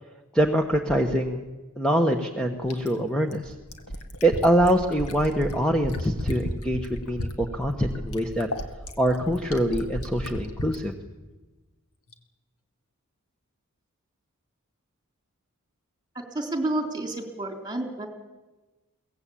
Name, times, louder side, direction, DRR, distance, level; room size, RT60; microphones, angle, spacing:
voice 1, 0.3-1.4 1.8-3.5 4.2-8.5 9.0-10.9, right 1 dB, 5° left, 3 dB, 1.3 m, -24 dB
Fill (with liquid), 2.7-10.8 12.1-12.2, equal, 80° left, 2.2 m, -33 dB
voice 2, 16.3-18.1, right 2 dB, 20° right, 5 dB, 3.4 m, -29 dB
23.0 x 18.0 x 8.7 m, 1.2 s
head